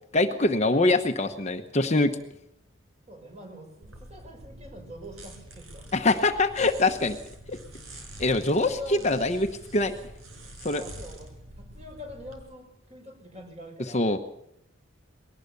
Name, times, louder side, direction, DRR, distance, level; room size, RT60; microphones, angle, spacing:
voice 1, 0.1-2.2 5.9-7.2 7.5-7.6 8.2-9.5 9.7-9.9 10.6-10.8 13.9-14.2, left 2 dB, 35° left, 6 dB, 1.0 m, -23 dB
voice 2, 3.1-5.9 8.5-9.1 10.7-11.3 11.6-14.2, left 1 dB, 30° right, 4 dB, 5.6 m, -44 dB
sound 1, 3.8-12.4, right 1 dB, 85° right, 5.6 m, -46 dB
21.0 x 18.5 x 6.9 m, 0.79 s
head